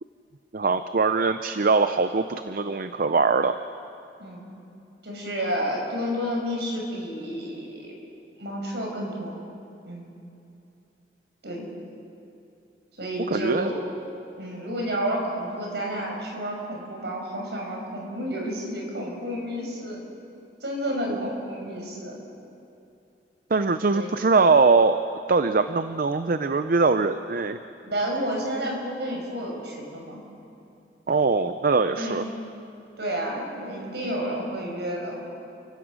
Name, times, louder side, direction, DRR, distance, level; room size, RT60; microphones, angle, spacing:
voice 1, 0.5-3.6 13.3-13.7 21.1-21.2 23.5-25.0 25.3-27.6 31.1-32.2, right 4 dB, 50° right, 10 dB, 0.6 m, -22 dB
voice 2, 5.0-7.9 8.4-9.4 9.9-10.1 11.4-11.7 13.0-13.9 14.4-20.0 20.6-22.2 23.9-24.1 27.8-30.2 32.0-32.2 33.0-35.2, equal, 70° right, 0 dB, 5.8 m, -30 dB
29.5 x 16.0 x 6.3 m, 2.7 s
head